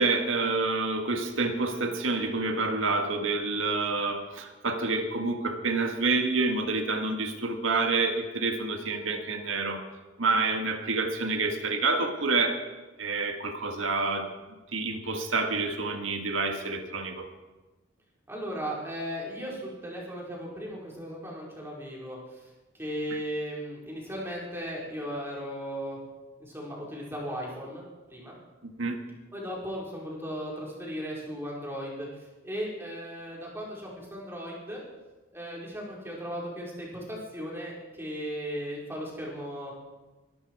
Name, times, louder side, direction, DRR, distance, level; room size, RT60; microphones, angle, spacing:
voice 1, 0.0-9.8 10.2-12.6 13.0-14.3 14.7-17.3 28.8-29.0, right 3 dB, 75° right, 5 dB, 1.8 m, -28 dB
voice 2, 18.3-22.5 22.7-26.0 26.4-27.8 28.1-28.3 29.3-34.8 35.3-39.7, equal, 10° right, -4 dB, 4.8 m, -36 dB
23.0 x 12.5 x 4.8 m, 1.1 s
head